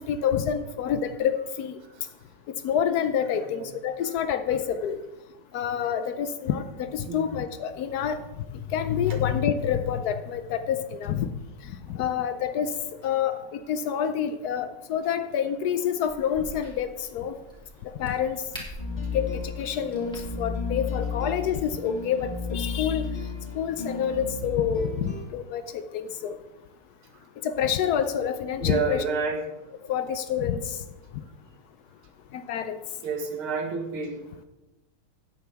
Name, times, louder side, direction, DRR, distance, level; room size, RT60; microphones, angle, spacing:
voice 1, 0.1-1.8 2.6-5.0 5.5-8.2 8.7-11.3 11.9-12.8 13.0-17.4 18.0-18.4 19.1-23.1 23.5-25.6 25.9-26.4 27.4-29.0 29.9-30.8 32.3-32.8, left 8 dB, 90° left, 10 dB, 0.8 m, -27 dB
voice 2, 3.3-3.7 7.1-7.3 28.6-29.4 33.0-34.2, right 5 dB, 75° right, 4 dB, 2.3 m, -29 dB
Crack, 16.1-21.1, equal, ahead, 3.1 m, -45 dB
sound 1, 18.8-25.3, left 4 dB, 30° left, 1.8 m, -33 dB
16.0 x 9.5 x 3.4 m, 1.0 s
omnidirectional pair, 2.4 m